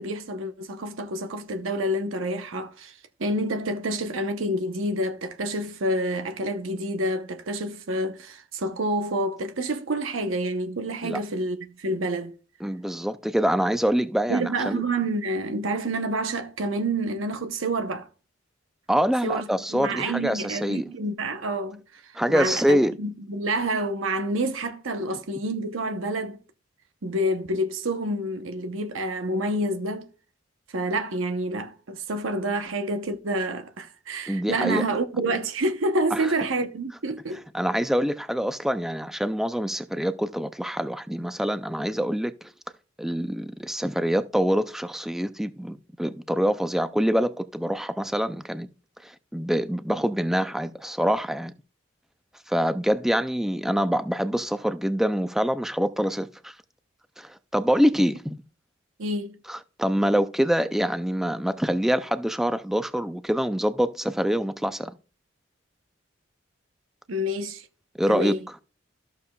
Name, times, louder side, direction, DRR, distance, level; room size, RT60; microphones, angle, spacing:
voice 1, 0.0-12.3 14.3-18.1 19.2-26.4 27.0-30.1 30.7-37.4 59.0-59.4 67.1-67.7 68.1-68.4, right 1 dB, 75° right, 0.8 m, -28 dB
voice 2, 12.6-14.8 18.9-20.9 22.2-22.9 34.3-34.9 36.1-36.3 37.5-42.5 43.0-48.7 49.0-51.5 52.5-56.5 57.2-58.4 59.5-64.9 68.0-68.6, equal, ahead, 0.4 m, -25 dB
13.5 x 6.8 x 2.3 m
head